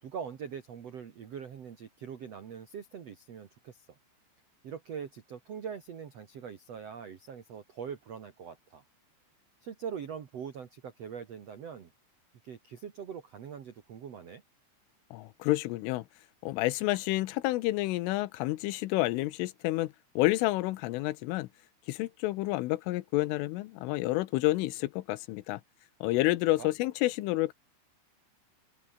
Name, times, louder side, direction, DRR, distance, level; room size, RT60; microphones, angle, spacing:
voice 1, 0.0-3.9 4.6-8.8 9.6-11.9 12.4-14.4 26.6-26.7, right 7 dB, 85° right, 1.4 m, -42 dB
voice 2, 15.1-16.0 16.4-21.5 21.9-25.6 26.0-27.5, left 18 dB, 80° left, 3.4 m, -29 dB
open air
omnidirectional pair, 5.8 m